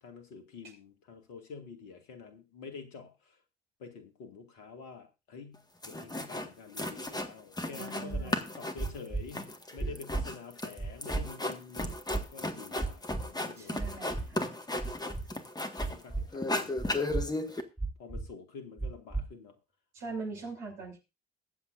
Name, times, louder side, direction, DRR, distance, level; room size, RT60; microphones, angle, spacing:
voice 1, 0.0-3.4 3.8-12.0 12.3-13.7 15.8-17.3 18.0-19.6, left 5 dB, 65° left, 7 dB, 2.2 m, -48 dB
sound 1, 5.5-5.6 5.8-6.5 6.8-8.1 8.3-16.0 16.3-17.6, left 2 dB, 15° left, 1.8 m, -35 dB
voice 2, 7.8-8.5 13.6-14.5 19.9-21.0, right 3 dB, 65° right, -1 dB, 6.5 m, -41 dB
sound 2, 8.1-8.2 8.8-9.2 9.8-10.2 10.8-11.2 11.8-12.2 12.8-13.2 13.8-14.2 14.8-15.2 15.8-16.2 16.8-17.2 17.8-18.2 18.8-19.2, right 3 dB, 5° right, 3.6 m, -33 dB
22.5 x 8.0 x 2.6 m, 0.28 s
figure-of-eight pair, 45°, 31 cm